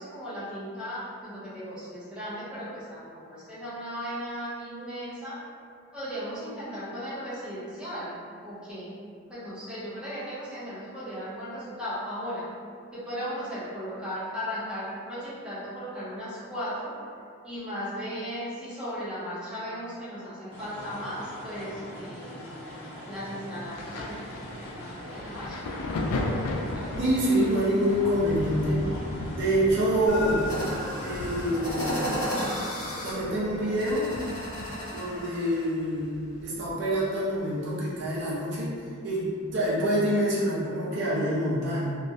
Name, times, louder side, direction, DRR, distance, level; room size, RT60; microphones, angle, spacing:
voice 1, 0.0-5.4 5.9-8.9 9.3-12.5 12.9-17.0 17.4-22.6 23.1-25.7 26.5-26.9, equal, 5° right, -12 dB, 0.5 m, -36 dB
sound 1, 20.5-32.4, equal, 50° left, 0.6 m, -42 dB
Thunder, 23.7-37.1 37.3-38.7 39.5-39.7, left 2 dB, 85° left, 0.3 m, -37 dB
voice 2, 27.0-28.8 29.3-30.5 31.0-32.0 33.0-34.1 34.9-38.7 39.0-42.0, equal, 50° right, -7 dB, 0.5 m, -26 dB
sound 2, 30.1-35.7, equal, 70° left, 0.9 m, -33 dB
2.3 x 2.1 x 2.6 m, 2.2 s
head